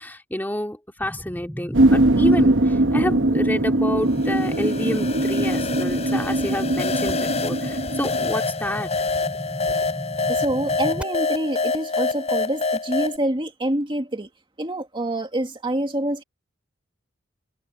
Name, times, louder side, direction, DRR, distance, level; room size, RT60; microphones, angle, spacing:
voice 1, 0.0-8.9, left 1 dB, 10° left, 2.4 m, -29 dB
sound 1, 1.0-11.0, equal, 5° right, 5.7 m, -36 dB
sound 2, 1.7-8.3, right 1 dB, 70° right, 1.1 m, -21 dB
sound 3, 4.1-13.2, left 3 dB, 35° left, 4.7 m, -27 dB
voice 2, 10.3-14.3 14.6-16.2, right 1 dB, 25° right, 2.1 m, -26 dB
head